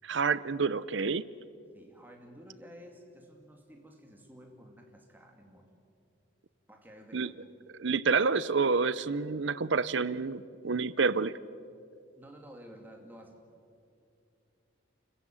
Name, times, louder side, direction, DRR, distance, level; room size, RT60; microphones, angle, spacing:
voice 1, 0.0-1.3 7.1-7.3 7.8-11.3, right 4 dB, 65° right, 18 dB, 0.7 m, -28 dB
voice 2, 1.7-5.7 6.7-7.4 12.2-13.4, equal, 10° right, 2 dB, 2.6 m, -52 dB
29.0 x 15.0 x 9.2 m, 2.4 s
head